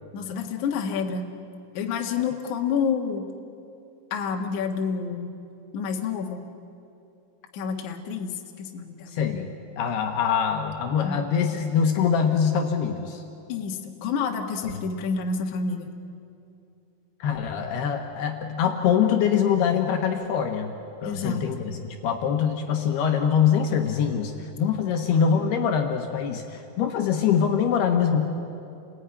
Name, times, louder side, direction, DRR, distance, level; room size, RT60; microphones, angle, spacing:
voice 1, 0.1-1.2 1.7-3.2 4.1-5.3 5.7-6.4 7.5-9.2 11.0-11.2 13.5-15.9 21.0-21.4, left 6 dB, 55° left, 2 dB, 2.5 m, -29 dB
voice 2, 9.1-9.5 9.8-13.2 17.2-20.7 21.0-28.3, left 7 dB, 70° left, 4 dB, 3.0 m, -24 dB
29.5 x 20.5 x 9.8 m, 2.7 s
omnidirectional pair, 5.3 m